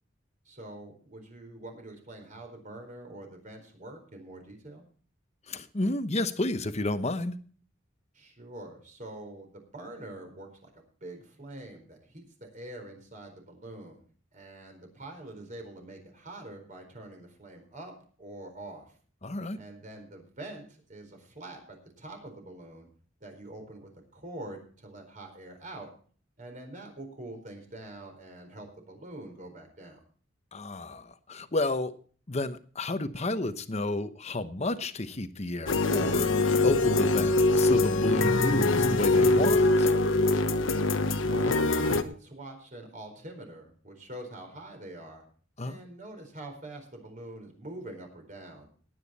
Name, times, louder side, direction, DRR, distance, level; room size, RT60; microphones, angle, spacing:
voice 1, 0.4-4.8 8.1-14.0 14.3-17.9 18.2-18.9 19.5-22.9 23.2-25.9 26.4-30.0 41.2-45.2 45.6-48.7, right 1 dB, 40° right, 4 dB, 4.3 m, -45 dB
voice 2, 5.5-7.4 19.2-19.6 30.5-31.9 32.3-39.9 45.6-45.8, left 2 dB, 35° left, 11 dB, 1.0 m, -31 dB
sound 1, 35.7-42.0, left 2 dB, 85° left, 1.2 m, -23 dB
18.5 x 9.3 x 4.2 m, 0.43 s
head